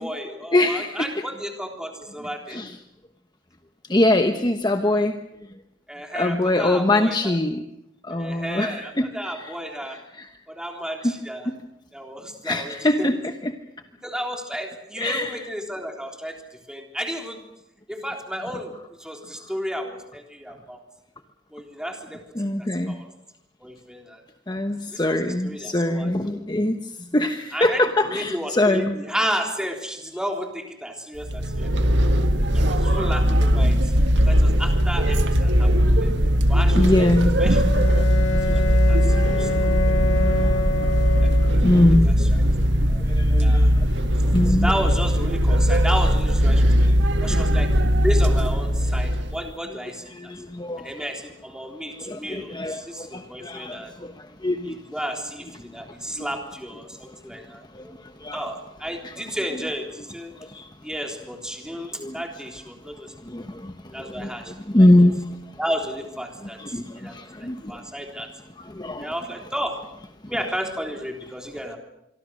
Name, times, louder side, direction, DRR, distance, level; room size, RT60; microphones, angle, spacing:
voice 1, 0.0-2.6 5.9-7.4 8.1-10.0 10.5-11.5 11.9-13.1 14.0-17.4 17.9-18.7 19.0-20.8 21.5-23.1 23.6-24.2 24.9-26.4 27.5-31.7 32.5-33.9 34.3-36.1 36.5-37.1 37.4-37.6 38.0-39.5 41.2-42.3 43.4-43.7 44.5-46.9 47.2-50.3 50.8-53.9 54.6-58.1 58.3-60.3 60.8-63.5 63.9-64.9 65.6-68.3 69.0-69.8 70.3-71.8, equal, 5° right, 2 dB, 3.7 m, -33 dB
voice 2, 0.5-0.9 2.5-2.7 3.9-5.1 6.1-7.6 8.1-9.1 12.4-13.3 15.0-15.3 22.4-22.9 24.5-26.8 27.1-29.0 36.1-36.3 36.8-37.4 38.6-38.7 39.4-39.5 39.9-40.0 40.4-40.5 41.6-42.4 42.9-43.8 44.3-44.7 50.1-50.9 52.1-54.1 54.4-54.8 56.2-56.3 57.7-57.8 58.2-58.4 60.5-60.6 62.0-62.1 63.3-64.3 64.7-65.3 66.6-67.7 68.7-69.1, left 1 dB, 20° left, 7 dB, 1.0 m, -22 dB
sound 1, 31.2-49.4, equal, 70° right, 1.9 m, -19 dB
Bowed string instrument, 37.5-41.9, left 2 dB, 85° left, 2.0 m, -27 dB
26.0 x 24.0 x 6.4 m, 0.83 s
head